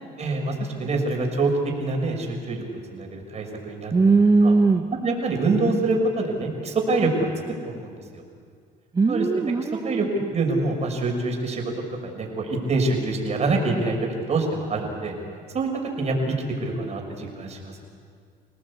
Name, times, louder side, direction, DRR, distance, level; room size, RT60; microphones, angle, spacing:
voice 1, 0.2-1.5 1.8-3.9 4.4-4.5 5.0-7.3 7.6-8.2 9.1-9.3 9.8-10.1 10.3-11.6 12.0-14.0 14.3-15.1 15.5-15.7 16.0-16.3 16.6-17.8, right 3 dB, 40° right, 2 dB, 5.9 m, -25 dB
voice 2, 3.9-4.8 8.9-10.1, right 3 dB, 20° right, 6 dB, 1.0 m, -19 dB
28.0 x 18.5 x 8.4 m, 2.1 s
cardioid pair, 110°, 17 cm